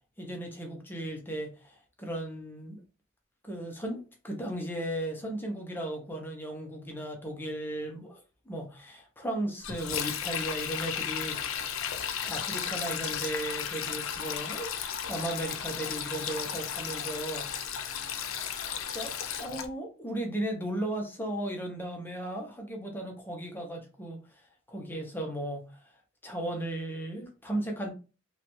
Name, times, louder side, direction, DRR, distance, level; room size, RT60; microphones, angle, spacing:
voice 1, 0.2-2.8 3.4-8.2 8.5-11.9 12.3-14.8 15.1-17.5 18.9-19.1 19.4-25.8 26.2-27.9, right 1 dB, 10° left, 0.6 m, -36 dB
Sink (filling or washing), 9.6-19.7, left 8 dB, 85° left, 0.5 m, -34 dB
3.0 x 2.4 x 3.0 m
head